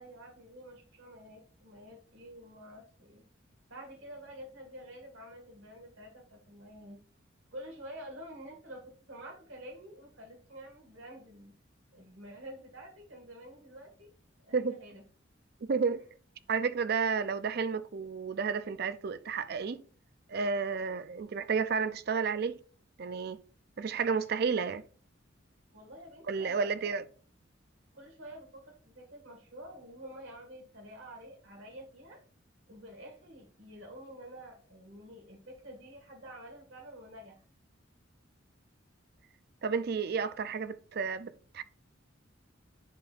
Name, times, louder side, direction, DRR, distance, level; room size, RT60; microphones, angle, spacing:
voice 1, 0.0-3.2 3.7-7.0 7.5-11.5 11.9-14.1 14.4-15.0 25.7-26.7 27.9-32.2 32.7-37.4, equal, 80° right, 1.9 m, -48 dB
voice 2, 15.7-16.0 16.5-19.8 20.3-22.6 23.0-23.4 23.8-24.8 26.3-27.0 39.6-41.6, right 5 dB, 50° right, 0.4 m, -31 dB
10.5 x 4.0 x 2.5 m
head